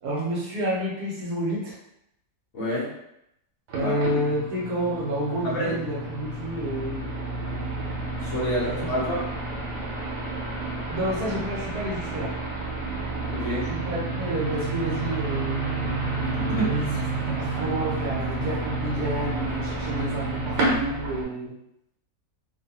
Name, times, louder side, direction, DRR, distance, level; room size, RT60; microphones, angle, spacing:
voice 1, 0.0-1.8 3.7-7.0 8.6-9.2 10.9-12.3 13.6-15.6 16.6-21.5, right 1 dB, 70° right, -4 dB, 1.4 m, -29 dB
voice 2, 2.5-2.9 3.8-3.9 5.4-5.7 8.2-9.2 13.3-13.7 16.5-16.7, equal, 50° left, -5 dB, 1.1 m, -27 dB
sound 1, 3.7-21.2, right 2 dB, 90° right, 1.4 m, -30 dB
3.1 x 2.3 x 2.8 m, 0.78 s
omnidirectional pair, 1.7 m